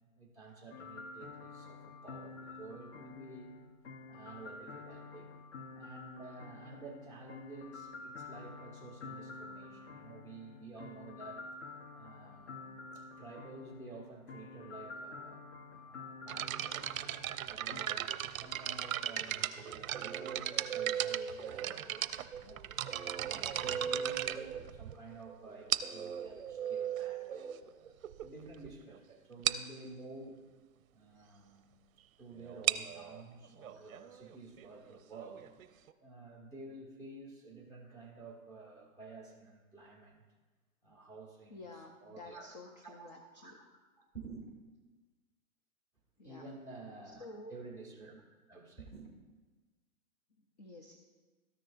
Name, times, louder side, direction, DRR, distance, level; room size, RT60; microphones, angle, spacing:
voice 1, 0.2-3.5 4.1-5.3 5.7-11.5 11.9-17.1 17.4-22.6 23.1-27.9 28.2-30.4 30.9-31.7 32.2-35.5 36.0-40.2 40.8-41.6 42.0-43.7 44.0-44.5 46.2-48.2 48.5-49.1, right 3 dB, 5° left, -2 dB, 1.3 m, -51 dB
sound 1, 0.7-17.8, left 3 dB, 55° left, 0.8 m, -49 dB
sound 2, 16.3-25.1 25.7-26.1 27.0-27.1 27.7-27.8 28.0-28.2 28.6-28.7 28.9-29.0 29.4-29.7 32.4-35.9, right 10 dB, 70° right, 0.6 m, -37 dB
sound 3, 19.6-28.3, right 8 dB, 40° right, 0.8 m, -41 dB
voice 2, 41.5-43.6 46.2-46.6 47.0-47.5 50.6-51.0, left 2 dB, 30° left, 3 dB, 0.5 m, -51 dB
13.5 x 6.3 x 2.4 m, 1.3 s
hypercardioid pair, 160°, 43 cm